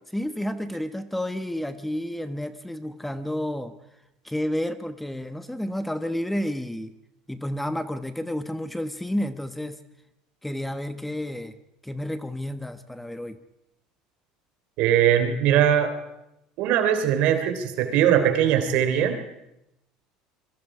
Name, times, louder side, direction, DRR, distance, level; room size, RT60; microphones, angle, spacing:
voice 1, 0.1-3.7 4.2-6.9 7.3-9.8 10.4-11.6 11.8-13.4, left 1 dB, 5° left, 11 dB, 1.2 m, -30 dB
voice 2, 14.8-15.9 16.6-19.2, right 10 dB, 70° right, 7 dB, 3.3 m, -21 dB
26.5 x 23.0 x 4.9 m, 0.87 s
supercardioid pair, 95°, 2 cm